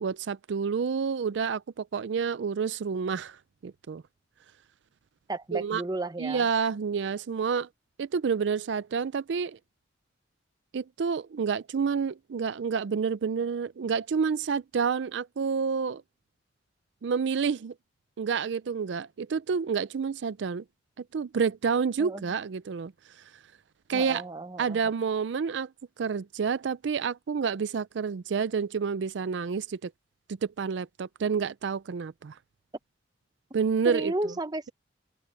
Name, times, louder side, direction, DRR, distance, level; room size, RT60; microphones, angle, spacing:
voice 1, 0.0-4.0 5.5-5.8 6.2-7.7 8.0-9.6 10.7-16.0 17.0-17.7 18.2-20.6 21.1-23.3 23.9-24.2 24.6-25.7 26.0-29.9 30.3-32.4 33.5-34.1, right 6 dB, 70° right, 0.4 m, -29 dB
voice 2, 5.3-6.5 22.0-22.3 23.9-24.8 33.5-33.6 33.8-34.7, right 2 dB, 20° right, 0.9 m, -33 dB
open air
head